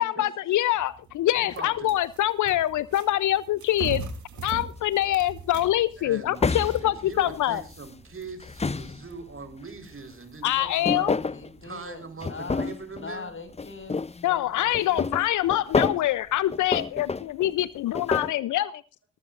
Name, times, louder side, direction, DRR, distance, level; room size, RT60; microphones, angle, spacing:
voice 1, 0.0-4.0 4.4-7.6 10.4-11.1 14.2-18.8, left 14 dB, 75° left, 19 dB, 0.7 m, -25 dB
sound 1, 0.8-11.7, right 5 dB, 65° right, 3.1 m, -43 dB
voice 2, 1.3-1.9 6.0-11.2 11.6-13.3, right 4 dB, 45° right, 7 dB, 4.3 m, -41 dB
sound 2, 4.8-5.0 6.4-7.9 8.3-9.4 10.5-11.5 12.2-13.1 13.5-14.3 14.7-16.1 16.5-18.3, left 4 dB, 20° left, 0.7 m, -29 dB
voice 3, 11.2-15.1, left 3 dB, 40° left, 9 dB, 5.8 m, -42 dB
19.5 x 14.5 x 2.6 m, 0.33 s
hypercardioid pair, 40°, 31 cm